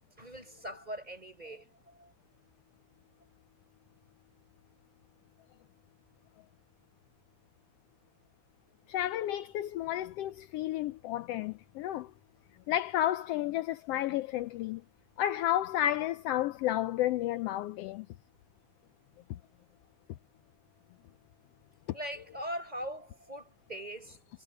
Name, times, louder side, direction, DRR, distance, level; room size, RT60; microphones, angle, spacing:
voice 1, 0.2-2.1 21.9-24.4, equal, 15° right, 6.0 m, -41 dB
voice 2, 8.9-12.1 12.7-14.8 15.2-18.1, left 13 dB, 85° left, 1.4 m, -31 dB
omnidirectional pair, 3.4 m